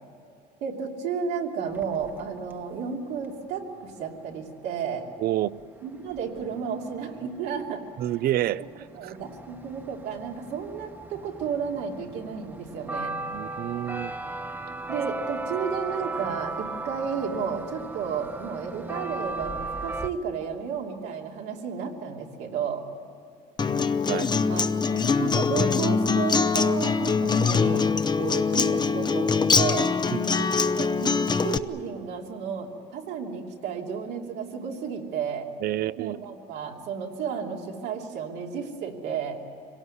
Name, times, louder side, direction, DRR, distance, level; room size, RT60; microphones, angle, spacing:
voice 1, 0.6-5.1 5.8-7.8 8.6-8.7 8.9-13.1 14.9-22.8 24.5-24.7 25.0-27.9 28.2-29.9 30.7-35.5 36.0-39.4, right 6 dB, 90° right, 2.9 m, -32 dB
sound 1, 1.7-2.5 5.6-5.7 5.9-20.1, right 2 dB, 10° right, 1.1 m, -37 dB
voice 2, 5.2-5.5 8.0-9.1 13.3-14.1 24.1-24.3 30.1-30.5 35.6-36.2, right 13 dB, 65° right, 0.6 m, -29 dB
Acoustic guitar, 23.6-31.6, left 5 dB, 25° left, 0.7 m, -23 dB
25.5 x 18.0 x 9.8 m
cardioid pair, 110°, 17 cm